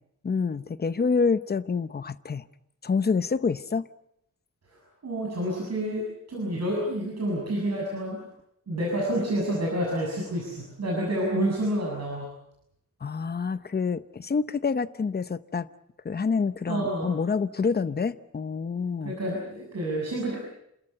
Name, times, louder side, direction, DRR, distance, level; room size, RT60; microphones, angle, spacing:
voice 1, 0.2-2.5 2.8-3.9 13.0-15.7 16.0-19.2, left 5 dB, 30° left, 0.8 m, -27 dB
voice 2, 4.7-8.2 8.7-12.3 16.7-17.1 19.0-20.4, right 1 dB, 60° right, 7.1 m, -29 dB
29.5 x 13.5 x 9.8 m
wide cardioid pair, 155°, 30 cm